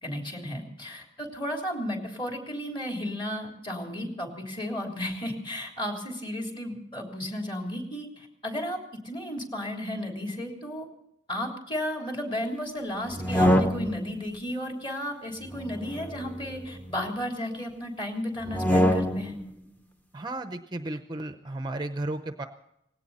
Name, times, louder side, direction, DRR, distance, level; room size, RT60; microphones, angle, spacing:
voice 1, 0.0-10.9 11.3-19.4, equal, 25° left, 1 dB, 3.4 m, -34 dB
sound 1, 13.1-14.2 15.4-17.1 18.4-19.4, equal, 10° left, 0.9 m, -26 dB
voice 2, 20.1-22.4, right 2 dB, 25° right, 8 dB, 0.7 m, -34 dB
19.0 x 17.0 x 4.2 m, 0.79 s
head